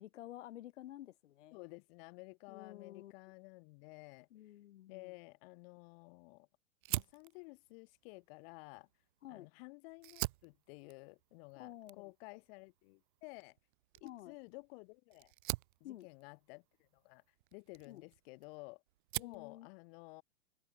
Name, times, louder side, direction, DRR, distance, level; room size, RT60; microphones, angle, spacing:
voice 1, 0.0-1.6 2.5-3.1 4.3-5.1 9.2-9.5 11.5-12.1 14.0-14.3 15.8-16.1 17.9-18.0 19.1-19.7, left 13 dB, 60° left, 2.1 m, -51 dB
voice 2, 1.5-4.3 4.9-6.5 6.9-8.9 9.3-13.6 14.0-15.3 15.8-17.2 17.5-18.8 19.2-20.2, left 29 dB, 45° left, 3.7 m, -53 dB
Fire, 6.8-9.5 9.9-18.6 18.9-19.5, right 19 dB, 40° right, 0.4 m, -45 dB
open air
hypercardioid pair, 110°, 40 cm